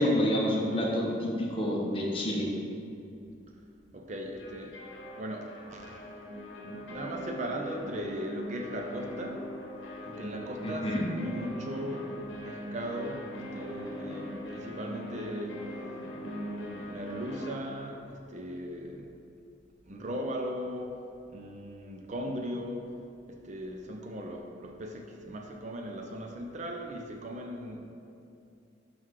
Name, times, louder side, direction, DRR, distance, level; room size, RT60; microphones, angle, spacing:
voice 1, 0.0-2.5 10.6-11.1, left 1 dB, 30° left, -3 dB, 1.1 m, -28 dB
voice 2, 3.9-4.8 5.2-6.3 6.6-9.4 10.0-15.7 16.2-19.2 19.9-21.0 21.3-22.9 23.3-27.8, equal, 40° right, 2 dB, 0.5 m, -38 dB
sound 1, 4.4-17.5, equal, 70° left, 1.1 m, -41 dB
6.0 x 5.7 x 4.7 m, 2.6 s
head